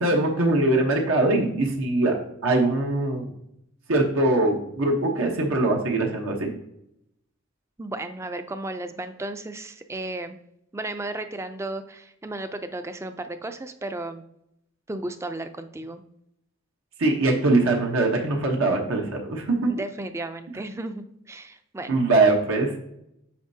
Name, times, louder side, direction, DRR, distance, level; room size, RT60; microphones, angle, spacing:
voice 1, 0.0-2.1 2.4-3.3 3.9-6.5 17.0-19.7 21.9-22.8, right 2 dB, 80° right, 1 dB, 1.0 m, -22 dB
voice 2, 7.8-10.4 10.7-14.2 14.9-16.0 19.7-22.0, right 2 dB, 15° right, 9 dB, 0.3 m, -34 dB
8.5 x 5.4 x 2.7 m, 0.79 s
head